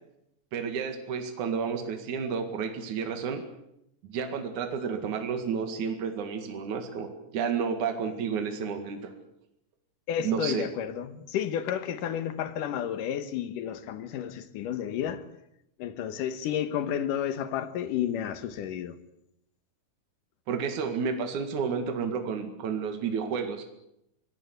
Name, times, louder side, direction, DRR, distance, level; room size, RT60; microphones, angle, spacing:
voice 1, 0.5-3.4 4.0-9.0 10.2-10.6 20.5-23.6, right 6 dB, 65° right, 3.4 m, -31 dB
voice 2, 10.1-15.3 15.8-19.0, left 9 dB, 75° left, 2.9 m, -31 dB
24.5 x 18.0 x 8.2 m
omnidirectional pair, 3.8 m